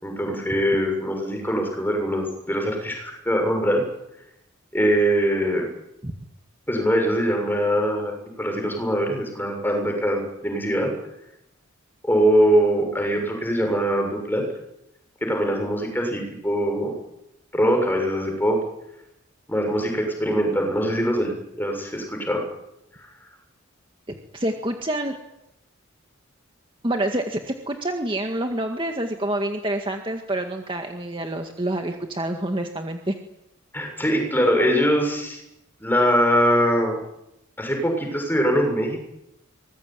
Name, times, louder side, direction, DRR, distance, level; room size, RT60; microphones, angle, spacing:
voice 1, 0.0-3.8 4.7-5.7 6.7-10.9 12.0-14.4 15.2-16.9 17.5-18.6 19.5-21.3 21.6-22.5 23.0-23.1 33.7-35.4 35.8-37.0 37.6-39.0, equal, 10° left, 3 dB, 7.1 m, -22 dB
voice 2, 24.3-25.2 26.8-33.2, right 1 dB, 25° right, 4 dB, 1.9 m, -27 dB
25.0 x 20.5 x 9.3 m, 0.87 s
head